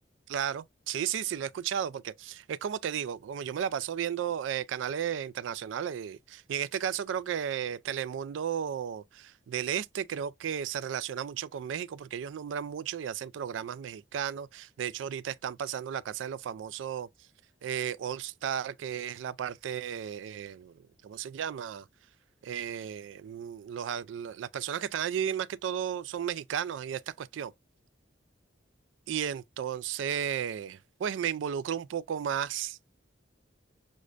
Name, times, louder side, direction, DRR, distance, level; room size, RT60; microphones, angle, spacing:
voice 1, 0.3-17.1 17.6-21.9 22.4-27.5 29.1-33.0, right 8 dB, 90° right, 0.3 m, -34 dB
6.3 x 2.1 x 2.3 m
head